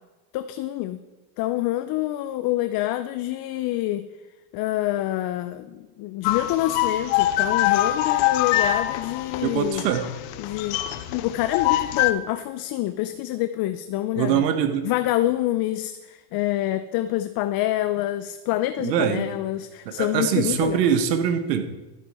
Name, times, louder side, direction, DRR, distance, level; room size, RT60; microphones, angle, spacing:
voice 1, 0.3-1.0 1.4-4.1 4.5-9.8 10.4-10.8 11.1-14.4 14.8-20.8, left 15 dB, 50° left, 11 dB, 0.7 m, -26 dB
sound 1, 6.2-12.1, left 13 dB, 65° left, 1.0 m, -24 dB
voice 2, 9.4-10.1 14.1-14.9 18.8-19.3 19.8-21.6, right 8 dB, 85° right, 7 dB, 1.4 m, -23 dB
12.0 x 10.0 x 4.4 m, 1.1 s
supercardioid pair, 110°, 47 cm